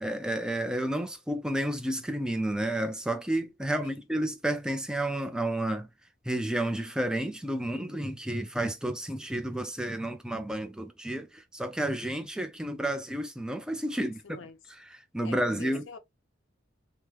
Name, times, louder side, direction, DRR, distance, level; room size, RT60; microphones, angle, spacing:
voice 1, 0.0-5.9 6.2-14.2 15.1-15.8, right 1 dB, 5° right, 0.4 m, -31 dB
voice 2, 3.6-3.9 13.9-14.6 15.2-16.0, left 4 dB, 75° left, 0.7 m, -47 dB
3.5 x 2.1 x 2.9 m
head